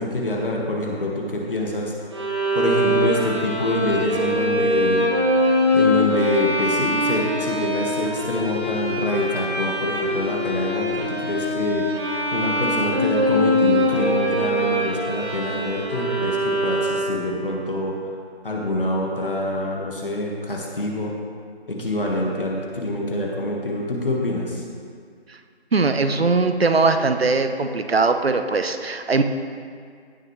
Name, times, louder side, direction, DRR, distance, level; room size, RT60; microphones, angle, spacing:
voice 1, 0.0-1.9 2.5-5.1 5.7-11.9 12.3-18.0 18.4-21.1 21.7-24.6, left 1 dB, 55° left, -2 dB, 1.6 m, -25 dB
Bowed string instrument, 2.1-17.4, left 1 dB, 25° right, 1.0 m, -23 dB
voice 2, 25.7-29.2, right 3 dB, 65° right, 8 dB, 0.8 m, -20 dB
16.5 x 6.5 x 3.2 m, 2.1 s
figure-of-eight pair, 165°, 33 cm